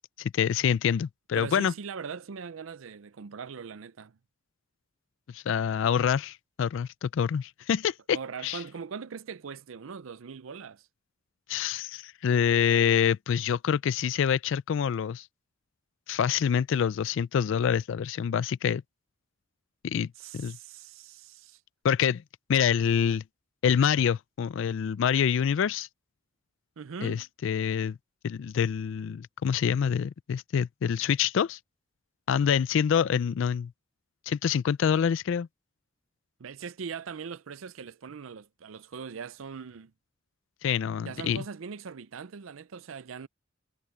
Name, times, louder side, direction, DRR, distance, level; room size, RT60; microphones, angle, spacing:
voice 1, 0.2-1.7 5.3-8.2 8.4-8.6 11.5-15.3 16.1-18.8 19.8-20.6 21.8-22.2 22.5-23.2 23.6-25.9 27.0-28.0 28.2-31.6 32.3-33.7 34.3-35.5 40.6-41.4, left 8 dB, 70° left, 0.3 m, -26 dB
voice 2, 1.3-4.2 8.1-10.8 20.2-21.6 26.8-27.3 36.4-39.9 41.1-43.3, right 6 dB, 85° right, 0.5 m, -41 dB
head